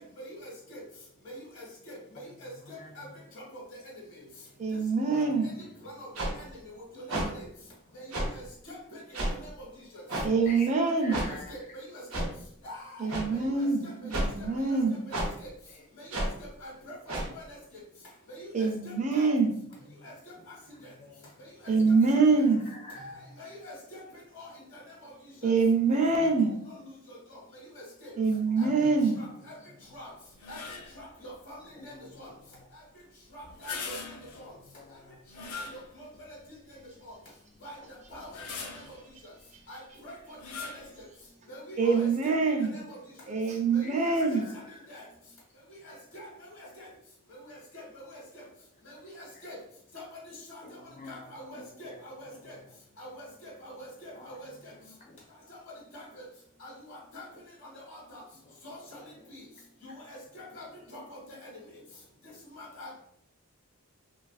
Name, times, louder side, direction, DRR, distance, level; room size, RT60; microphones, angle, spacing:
voice 1, 0.2-0.8 1.2-2.0 2.4-3.1 3.3-3.4 5.1-5.2 5.8-6.1 6.4-6.5 6.9-7.4 7.9-8.0 8.3-9.0 9.3-9.5 10.7-10.8 11.1-11.8 12.1-12.2 12.6-13.7 14.4-14.8 15.4-15.5 16.0-17.0 17.3-17.4 18.3-19.3 20.0-20.3 21.9-22.0 23.0-24.0 24.4-24.5 24.7-25.1 25.4-25.5 27.3-27.4 27.7-28.1 28.6-28.7 29.1-29.6 29.9-30.1 30.5-30.6 30.9-31.6 31.8-32.3 33.3-33.9 34.4-34.5 35.4-35.5 37.6-37.8 38.1-38.3 39.7-40.8 41.5-42.3 42.6-43.0 43.7-44.6 44.9-45.0 45.8-46.3 46.6-46.9 47.5-48.2 48.9-49.6 49.9-50.0 50.5-50.6 51.1-52.5 53.0-54.5 55.9-56.0 56.6-57.3 57.7-58.2 58.6-59.0 59.3-59.4 59.8-60.6 60.9-61.2 62.6-63.0, equal, 65° left, -4 dB, 1.0 m, -45 dB
voice 2, 4.6-5.5 10.2-11.2 13.0-15.0 18.5-19.5 21.7-22.7 25.4-26.5 28.2-29.2 41.8-42.8 43.3-44.5, right 4 dB, 30° right, 2 dB, 0.4 m, -25 dB
sound 1, 6.2-6.3 7.1-7.3 8.1-8.3 9.1-9.3 10.1-10.3 11.1-11.3 12.1-12.3 13.1-13.2 14.1-14.3 15.1-15.3 16.1-16.3 17.1-17.3, right 1 dB, 75° right, 0.7 m, -30 dB
voice 3, 11.0-11.5 20.7-21.3 22.8-23.0 31.7-31.9 34.4-34.5 34.7-35.2 44.2-44.5 50.6-51.2 51.5-51.6 54.1-54.3, left 2 dB, 35° left, 0 dB, 0.5 m, -46 dB
sound 2, 30.4-31.1 33.4-34.5 35.3-36.2 36.8-36.9 38.1-39.1 40.4-40.9, left 4 dB, 90° left, 0.5 m, -41 dB
2.8 x 2.3 x 2.4 m, 0.70 s
head